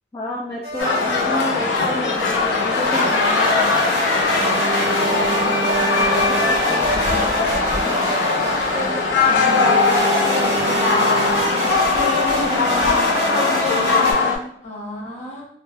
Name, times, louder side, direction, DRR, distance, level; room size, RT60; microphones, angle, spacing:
voice 1, 0.1-3.8 12.6-13.6 13.9-14.5, left 2 dB, 25° left, -5 dB, 0.3 m, -30 dB
sound 1, 0.6-1.6 2.7-9.1 9.8-14.1, right 1 dB, 35° right, 0.7 m, -26 dB
sound 2, 0.8-14.4, left 4 dB, 85° left, 0.5 m, -20 dB
voice 2, 4.2-11.8 12.3-12.8 14.6-15.5, equal, 40° left, -3 dB, 0.7 m, -35 dB
Alarm, 4.3-6.9 9.3-11.9, right 4 dB, 80° right, 0.4 m, -27 dB
2.1 x 2.0 x 3.0 m, 0.66 s
head